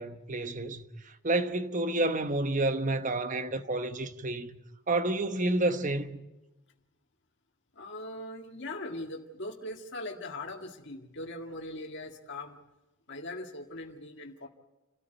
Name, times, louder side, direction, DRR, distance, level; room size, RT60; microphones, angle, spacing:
voice 1, 0.0-4.6 4.9-6.2, right 2 dB, 35° right, 1.0 m, -30 dB
voice 2, 7.8-12.6 13.1-14.5, left 2 dB, 55° left, 1.9 m, -40 dB
29.0 x 13.0 x 9.2 m
head